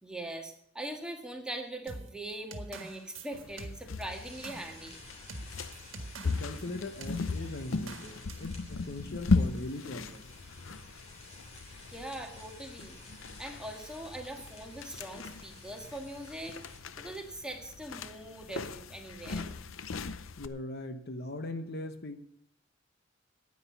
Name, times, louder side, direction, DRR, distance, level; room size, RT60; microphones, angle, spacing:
voice 1, 0.0-5.0 11.9-13.0 13.4-16.6 17.0-19.5, right 1 dB, 5° right, 2 dB, 1.7 m, -41 dB
sound 1, 1.9-6.7 7.0-7.2 7.9-8.5, right 2 dB, 75° right, 1.4 m, -45 dB
sound 2, 3.3-20.5, left 3 dB, 80° left, 0.7 m, -37 dB
sound 3, 4.1-16.8, left 2 dB, 35° left, 3.1 m, -52 dB
voice 2, 6.2-10.3 20.4-22.2, left 2 dB, 55° left, 8 dB, 0.9 m, -40 dB
9.9 x 9.7 x 6.9 m, 0.67 s
head